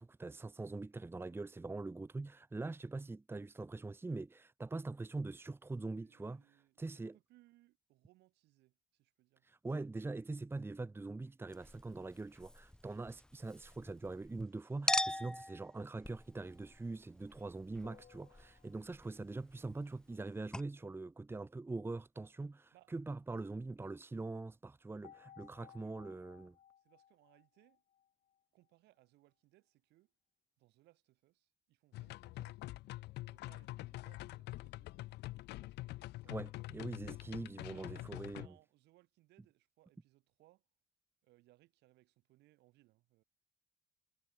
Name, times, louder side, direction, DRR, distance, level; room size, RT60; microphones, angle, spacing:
voice 1, 0.0-6.4 6.8-7.1 9.5-26.5 36.3-38.5, right 3 dB, 15° right, 1.1 m, -43 dB
voice 2, 5.8-9.5 22.7-22.9 25.5-26.0 26.8-27.8 28.5-30.1 30.6-32.6 33.3-35.1 35.6-37.1 37.7-40.7 41.2-43.2, right 18 dB, 85° right, 6.9 m, -69 dB
Chink clink, 11.5-14.4 14.9-20.2 20.5-20.6, left 1 dB, 5° left, 0.8 m, -42 dB
sound 1, 17.8-19.4 25.0-28.4, left 10 dB, 50° left, 1.4 m, -61 dB
sound 2, 31.9-38.5, left 18 dB, 80° left, 1.3 m, -46 dB
cardioid pair, 110°, 17 cm